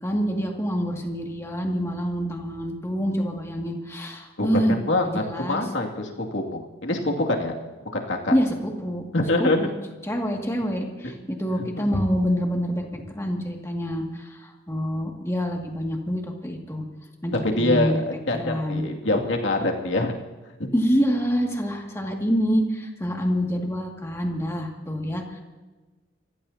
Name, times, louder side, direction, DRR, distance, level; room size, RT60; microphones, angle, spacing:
voice 1, 0.0-4.8 5.1-5.6 8.3-9.0 9.4-9.7 10.0-16.9 17.2-18.0 18.3-18.8 20.7-25.4, equal, 15° left, 0 dB, 2.2 m, -26 dB
voice 2, 4.4-7.5 7.9-8.3 9.1-9.6 11.8-11.9 17.3-20.1, left 2 dB, 70° left, 1 dB, 2.4 m, -25 dB
26.5 x 16.0 x 2.9 m, 1.2 s
head